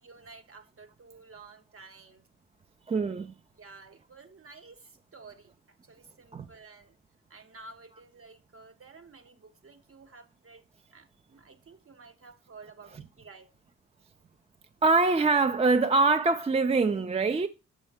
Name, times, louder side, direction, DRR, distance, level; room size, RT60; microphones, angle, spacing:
voice 1, 0.0-2.3 3.6-7.0 7.3-10.6 10.9-13.5, right 4 dB, 45° right, 1.0 m, -52 dB
voice 2, 2.9-3.3 6.3-6.5 14.8-17.5, right 3 dB, 20° right, 0.4 m, -24 dB
6.2 x 5.1 x 3.5 m
supercardioid pair, 45°, 32 cm